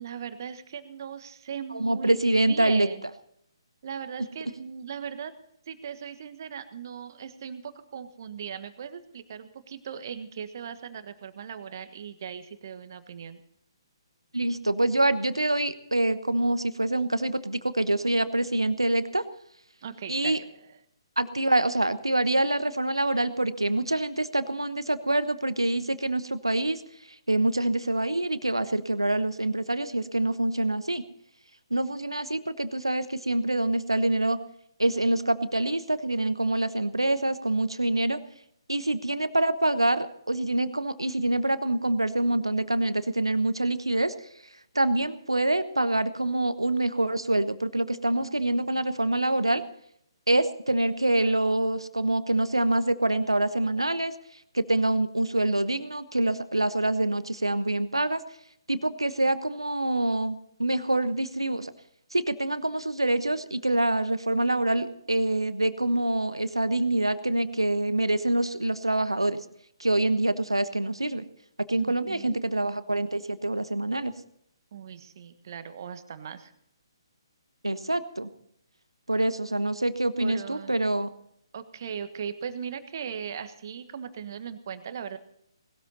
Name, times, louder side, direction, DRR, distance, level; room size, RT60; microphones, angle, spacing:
voice 1, 0.0-3.0 3.8-5.3 5.7-13.4 19.8-20.4 71.8-72.4 74.7-76.5 80.2-80.8 81.5-85.2, right 7 dB, 45° right, 11 dB, 1.5 m, -38 dB
voice 2, 1.7-2.9 14.3-19.2 20.1-20.4 21.2-26.8 27.3-31.0 31.7-34.4 34.8-38.2 38.7-44.1 44.7-49.6 50.3-54.1 54.5-58.2 58.7-61.7 62.1-69.4 69.8-71.2 71.7-74.1 77.6-78.3 79.1-81.1, right 1 dB, 85° right, 13 dB, 1.2 m, -26 dB
19.5 x 13.0 x 4.1 m, 0.72 s
figure-of-eight pair, 135°, 3 cm